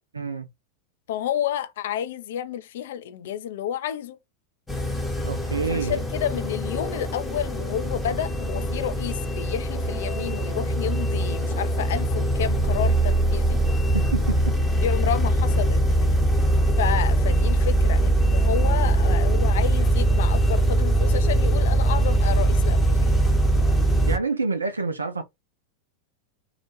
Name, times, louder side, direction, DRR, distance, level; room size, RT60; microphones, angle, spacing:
voice 1, 0.1-0.5 5.2-6.0 13.9-14.5 24.1-25.2, right 3 dB, 75° right, 0.4 m, -27 dB
voice 2, 1.1-4.2 5.7-13.6 14.8-15.8 16.8-23.0, left 10 dB, 55° left, 0.4 m, -30 dB
sound 1, 4.7-24.2, right 1 dB, 5° left, 0.7 m, -22 dB
sound 2, 9.7-15.0, right 5 dB, 30° right, 0.8 m, -34 dB
2.4 x 2.1 x 2.8 m
figure-of-eight pair, 90°, 0 cm